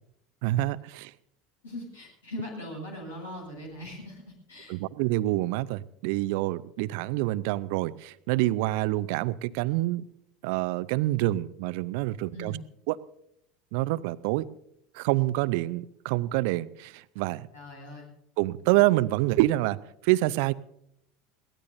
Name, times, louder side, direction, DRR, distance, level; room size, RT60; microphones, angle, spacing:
voice 1, 0.4-1.1 4.7-10.0 10.4-12.6 12.9-13.0 13.7-14.5 14.9-17.5 18.4-20.5, right 18 dB, 60° right, 17 dB, 0.6 m, -27 dB
voice 2, 1.6-4.2 4.5-4.8 12.3-12.6 17.5-18.1, left 1 dB, 75° left, -1 dB, 7.6 m, -40 dB
22.5 x 17.5 x 2.6 m, 0.74 s
figure-of-eight pair, 75°, 0 cm